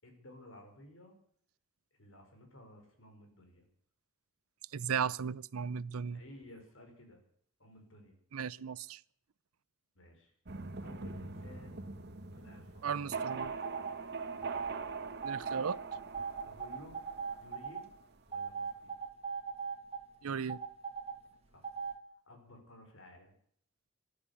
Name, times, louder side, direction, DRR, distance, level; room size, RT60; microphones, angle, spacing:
voice 1, 0.0-1.1 2.0-3.7 6.1-7.2 7.6-8.2 9.9-10.3 10.8-11.9 12.3-13.2 14.3-14.6 16.4-17.0 17.4-17.8 18.3-18.9 21.5-21.7 22.2-23.3, left 1 dB, 65° left, 5.1 m, -55 dB
voice 2, 4.7-6.2 8.3-9.0 12.8-13.5 15.2-15.8 20.2-20.6, right 6 dB, 85° right, 0.6 m, -36 dB
sound 1, 10.5-18.1, right 4 dB, 50° right, 1.2 m, -42 dB
sound 2, 13.3-13.9 14.4-14.7 15.2-17.8 18.3-20.0 20.5-21.1 21.6-21.9, right 5 dB, 30° right, 1.8 m, -39 dB
14.0 x 12.0 x 8.4 m
head